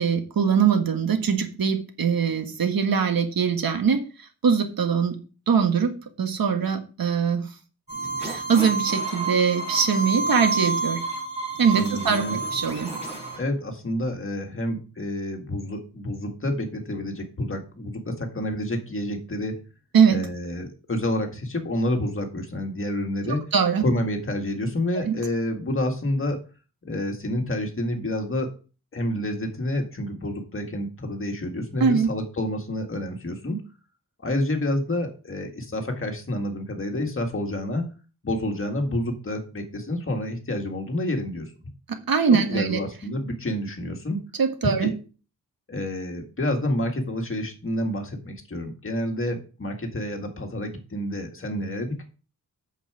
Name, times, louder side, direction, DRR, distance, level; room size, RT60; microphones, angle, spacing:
voice 1, 0.0-4.0 4.4-5.2 5.5-5.9 6.2-7.5 8.2-11.0 11.6-12.9 19.9-20.2 23.3-23.8 25.1-25.2 31.8-32.1 42.1-42.8 44.4-44.9, right 6 dB, 85° right, 6 dB, 1.7 m, -22 dB
sound 1, 7.9-13.4, right 3 dB, 20° right, 4.8 m, -29 dB
voice 2, 11.7-12.4 13.3-19.6 20.1-23.4 23.8-26.4 26.8-28.5 28.9-33.6 34.2-37.8 38.2-41.5 42.3-44.2 44.6-44.9 45.7-52.0, left 1 dB, 40° left, 3 dB, 2.0 m, -28 dB
8.5 x 7.1 x 5.0 m, 0.35 s
wide cardioid pair, 175°, 34 cm